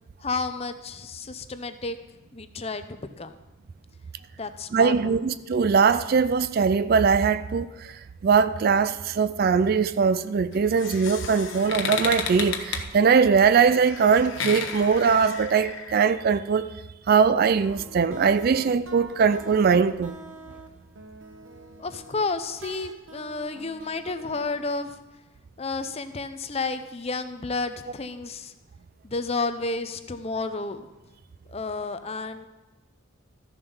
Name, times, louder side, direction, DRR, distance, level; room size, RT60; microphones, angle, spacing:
voice 1, 0.2-2.0 2.3-3.4 4.4-5.2 21.8-25.0 25.6-28.5 29.0-30.9 31.5-32.5, left 3 dB, 30° left, 0.6 m, -31 dB
voice 2, 4.7-16.7 17.1-20.1, right 6 dB, 45° right, 0.3 m, -21 dB
sound 1, 10.5-16.1, left 6 dB, 65° left, 1.1 m, -33 dB
sound 2, 17.2-24.8, right 2 dB, 70° right, 1.1 m, -46 dB
13.5 x 7.0 x 5.5 m
head